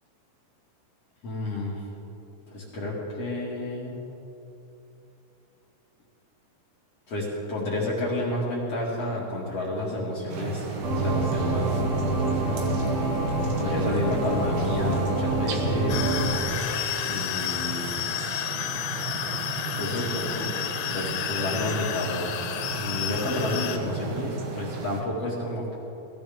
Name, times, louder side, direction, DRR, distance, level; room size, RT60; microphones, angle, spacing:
voice 1, 1.2-1.8 2.5-4.0 7.1-10.6 11.0-12.7 13.6-16.2 17.0-17.9 19.8-20.5 20.9-22.4 22.8-25.7, left 1 dB, 50° left, -6 dB, 1.9 m, -30 dB
sound 1, 10.3-25.0, right 5 dB, 75° right, 2.4 m, -36 dB
sound 2, 10.8-16.4, right 2 dB, 55° right, 2.7 m, -26 dB
sound 3, 15.9-23.8, left 10 dB, 85° left, 3.3 m, -31 dB
20.5 x 14.5 x 3.6 m, 3.0 s
omnidirectional pair, 5.9 m